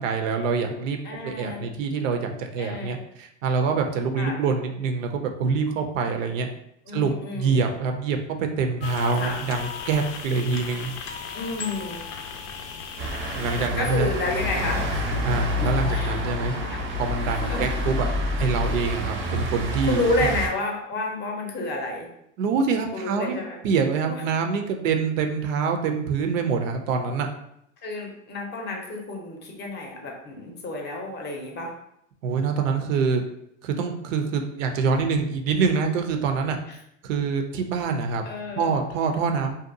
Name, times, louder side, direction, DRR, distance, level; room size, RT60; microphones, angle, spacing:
voice 1, 0.0-1.0 1.2-6.5 6.9-10.9 13.4-14.1 15.2-16.5 17.0-18.1 18.4-20.3 22.4-23.4 23.6-27.3 32.2-33.2 33.6-36.6 37.0-38.3 38.5-39.5, right 5 dB, 80° right, 5 dB, 0.5 m, -25 dB
voice 2, 1.0-1.6 2.6-3.0 4.2-4.4 6.9-7.7 9.2-9.4 11.3-12.0 13.8-15.0 15.6-16.8 17.3-17.6 19.9-22.1 22.9-23.6 24.0-24.2 27.8-31.7 36.7-36.8 38.2-38.7, left 2 dB, 30° left, 1 dB, 0.6 m, -30 dB
sound 1, 8.8-13.7, left 6 dB, 85° left, 0.5 m, -36 dB
sound 2, 13.0-20.5, left 1 dB, 30° right, 0.5 m, -28 dB
2.7 x 2.2 x 2.5 m, 0.76 s
hypercardioid pair, 100°, 38 cm